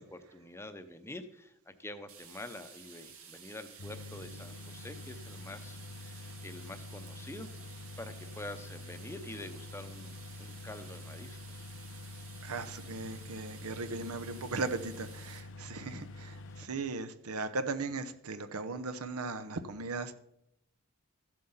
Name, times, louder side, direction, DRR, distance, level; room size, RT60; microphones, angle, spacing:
voice 1, 0.0-7.5 8.0-11.7 16.4-16.7, left 2 dB, 10° left, 0.7 m, -47 dB
sound 1, 2.1-15.4, right 7 dB, 70° right, 2.2 m, -53 dB
sound 2, 3.8-16.7, left 2 dB, 60° left, 0.6 m, -47 dB
voice 2, 12.4-20.2, right 3 dB, 85° right, 0.9 m, -37 dB
14.0 x 7.7 x 5.6 m
head